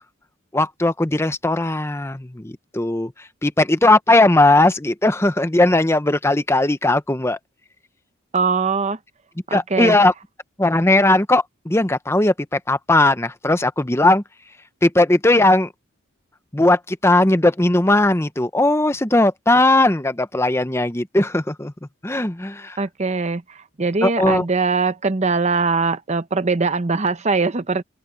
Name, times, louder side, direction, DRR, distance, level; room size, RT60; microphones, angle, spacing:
voice 1, 0.5-3.1 3.4-7.4 9.5-10.1 10.6-14.2 14.8-15.7 16.5-21.7 22.0-22.8 24.0-24.4, left 2 dB, 10° left, 0.8 m, -18 dB
voice 2, 8.3-9.0 9.5-10.0 22.8-27.8, right 4 dB, 35° right, 0.8 m, -21 dB
open air
head